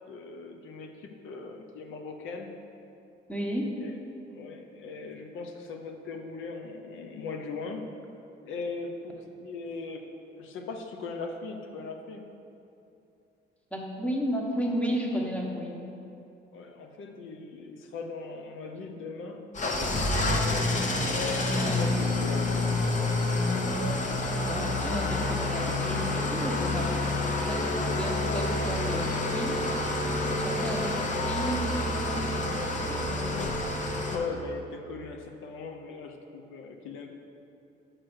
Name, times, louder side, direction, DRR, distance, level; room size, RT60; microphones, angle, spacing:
voice 1, 0.1-2.5 3.8-4.0 4.3-7.9 8.4-12.2 16.5-22.9 34.1-37.1, left 4 dB, 80° left, 3 dB, 0.7 m, -39 dB
voice 2, 3.3-3.8 13.7-15.8 21.5-21.8 24.3-26.9 27.5-29.9 30.3-33.7, equal, 5° left, -1 dB, 1.2 m, -33 dB
Engine starting / Idling, 19.5-34.2, left 2 dB, 40° left, 0.9 m, -28 dB
6.2 x 4.7 x 6.2 m, 2.7 s
cardioid pair, 90°, 20 cm